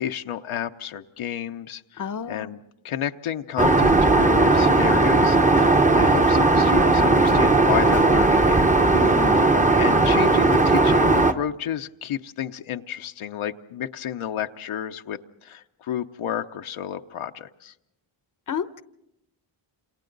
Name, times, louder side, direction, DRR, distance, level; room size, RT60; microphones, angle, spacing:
voice 1, 0.0-8.6 9.7-17.7, left 10 dB, 75° left, 0.9 m, -31 dB
voice 2, 2.0-2.5 8.9-9.5 18.5-18.8, left 6 dB, 40° left, 0.8 m, -30 dB
Aircraft, 3.6-11.3, right 2 dB, 15° right, 0.9 m, -17 dB
29.0 x 28.0 x 4.0 m
cardioid pair, 85°, 49 cm